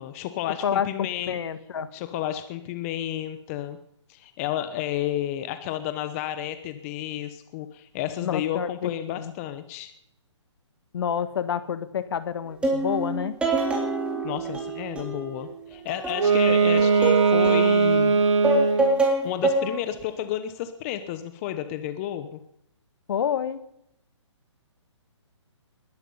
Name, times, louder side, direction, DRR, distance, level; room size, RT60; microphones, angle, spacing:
voice 1, 0.0-1.4 1.9-3.8 4.1-9.9 14.2-18.3 19.2-22.4, left 12 dB, 30° left, 10 dB, 0.9 m, -32 dB
voice 2, 0.6-1.9 8.2-9.3 10.9-13.4 23.1-23.6, left 8 dB, 55° left, 12 dB, 1.5 m, -28 dB
sound 1, 12.6-15.4 15.7-17.7 18.2-19.8 20.1-20.2, right 2 dB, 5° right, 3.4 m, -26 dB
Wind instrument woodwind instrument, 16.1-19.0, right 5 dB, 75° right, 2.0 m, -20 dB
20.5 x 12.0 x 5.5 m, 0.78 s
hypercardioid pair, 145°, 16 cm